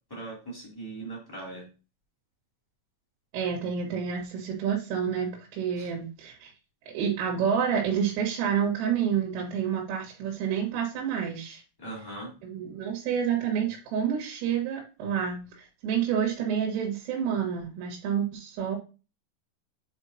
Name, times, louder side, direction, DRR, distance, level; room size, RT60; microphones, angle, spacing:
voice 1, 0.1-1.7 5.8-5.9 11.8-12.3, right 2 dB, 5° left, -5 dB, 2.2 m, -39 dB
voice 2, 3.3-6.5 6.9-11.6 12.4-18.8, right 8 dB, 85° right, -1 dB, 4.3 m, -29 dB
9.0 x 4.8 x 2.9 m, 0.32 s
omnidirectional pair, 5.7 m